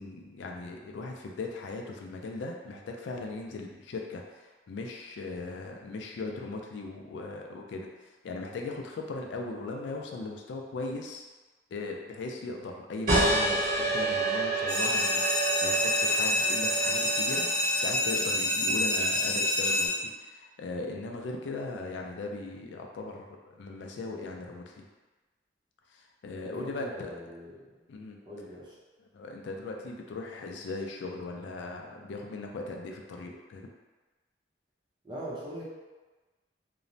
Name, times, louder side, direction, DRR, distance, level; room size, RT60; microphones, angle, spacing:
voice 1, 0.0-11.2 11.7-24.9 25.9-27.2 27.9-28.2 29.0-33.7, left 3 dB, 75° left, 1 dB, 0.3 m, -38 dB
sound 1, 13.1-18.3, right 2 dB, 50° right, 0.9 m, -29 dB
sound 2, 14.7-19.9, left 1 dB, 50° left, 0.9 m, -27 dB
voice 2, 26.4-27.6 28.3-28.7 35.0-35.6, equal, 25° right, -7 dB, 0.6 m, -41 dB
2.9 x 2.0 x 2.6 m, 1.2 s
head